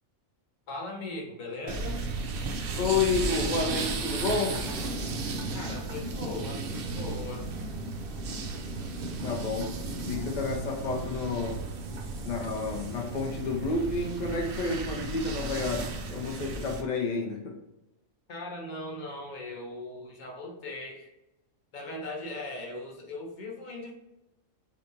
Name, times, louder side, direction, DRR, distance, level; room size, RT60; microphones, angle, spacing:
voice 1, 0.7-2.0 5.5-7.5 18.3-21.1 21.7-23.9, left 2 dB, 45° left, 0 dB, 0.7 m, -39 dB
sound 1, 1.7-16.8, right 3 dB, 65° right, 0.5 m, -34 dB
voice 2, 2.8-4.6 8.9-11.7 12.2-17.6, left 4 dB, 70° left, 0 dB, 0.4 m, -30 dB
3.4 x 2.7 x 2.7 m, 0.95 s
omnidirectional pair, 1.4 m